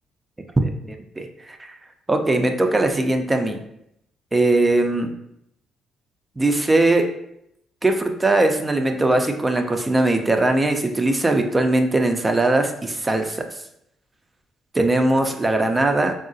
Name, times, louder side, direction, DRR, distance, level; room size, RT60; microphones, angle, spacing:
voice 1, 0.6-1.8 2.1-3.6 4.3-5.1 6.4-7.1 7.8-13.4 14.7-16.1, right 2 dB, 20° right, 5 dB, 0.4 m, -20 dB
3.7 x 2.0 x 2.6 m, 0.77 s
supercardioid pair, 65°, 0 cm